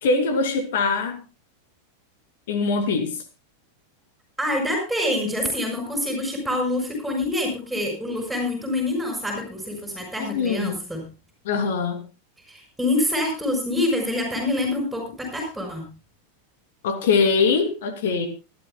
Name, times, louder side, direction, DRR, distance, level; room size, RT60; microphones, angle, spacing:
voice 1, 0.0-1.2 2.5-3.1 10.2-10.7 11.4-12.0 16.8-18.3, left 4 dB, 55° left, 2.8 m, -22 dB
voice 2, 4.4-11.0 12.5-15.9, left 1 dB, ahead, 5.2 m, -26 dB
25.0 x 12.0 x 2.2 m
figure-of-eight pair, 90°, 0 cm